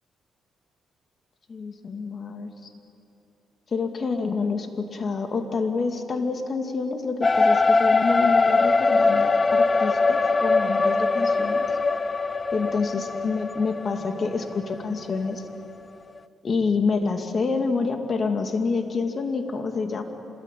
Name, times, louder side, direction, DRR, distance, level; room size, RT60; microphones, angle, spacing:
voice 1, 1.5-2.5 3.7-11.7 12.5-15.4 16.4-20.0, left 4 dB, 45° left, 5 dB, 2.8 m, -27 dB
sound 1, 7.2-15.7, left 3 dB, 25° left, 0.7 m, -22 dB
26.5 x 21.0 x 9.4 m, 2.8 s
cardioid pair, 90°, 0 cm